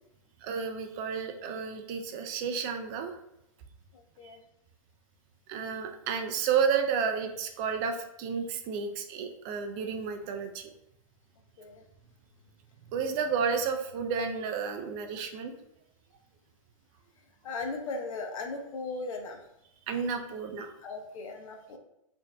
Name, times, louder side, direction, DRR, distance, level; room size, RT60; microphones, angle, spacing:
voice 1, 0.4-3.2 4.2-4.4 5.5-10.7 12.9-15.5 19.9-20.7, right 6 dB, 30° right, 6 dB, 0.3 m, -31 dB
voice 2, 3.9-4.4 11.6-11.8 17.4-19.4 20.8-21.8, left 3 dB, 70° left, 3 dB, 0.8 m, -37 dB
5.1 x 2.6 x 2.2 m, 0.80 s
hypercardioid pair, 140°, 18 cm